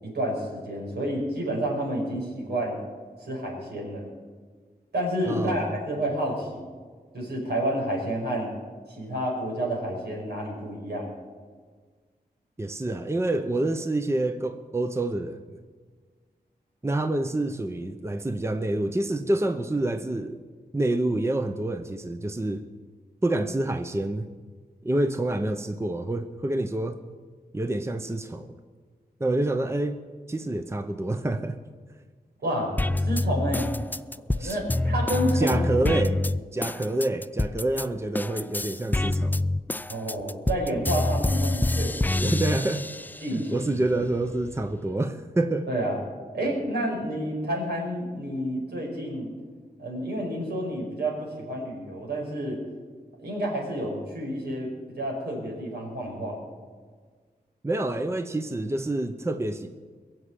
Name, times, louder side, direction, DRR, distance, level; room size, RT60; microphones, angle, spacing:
voice 1, 0.0-2.8 3.2-4.1 4.9-6.7 7.1-8.5 8.9-11.1 32.4-33.7 34.3-35.9 39.9-42.3 43.2-43.8 45.7-46.0 46.3-49.3 49.8-52.6 53.2-56.4, right 1 dB, 80° right, -1 dB, 5.4 m, -30 dB
voice 2, 5.3-5.8 12.6-15.4 16.8-20.4 20.7-22.6 23.2-24.3 24.8-27.0 27.5-28.6 29.2-30.0 30.3-31.6 34.4-34.6 35.3-36.2 36.5-39.4 42.2-42.9 43.3-45.7 57.6-59.7, right 2 dB, 15° right, 8 dB, 0.8 m, -27 dB
sound 1, 32.8-37.9 38.1-43.3 43.8-44.8, left 2 dB, 10° left, 0.3 m, -27 dB
22.0 x 7.6 x 8.3 m, 1.5 s
wide cardioid pair, 95°, 17 cm